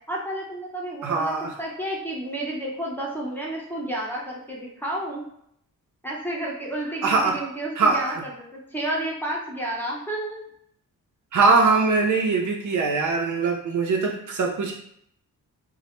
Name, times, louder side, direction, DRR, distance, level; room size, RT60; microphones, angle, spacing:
voice 1, 0.1-1.3 1.6-5.3 6.0-10.4, right 1 dB, 5° left, -4 dB, 0.6 m, -31 dB
voice 2, 1.0-1.5 7.0-7.4 7.8-8.1 11.3-14.7, right 4 dB, 60° right, 1 dB, 0.5 m, -22 dB
2.1 x 2.0 x 3.0 m, 0.71 s
cardioid pair, 80°, 35 cm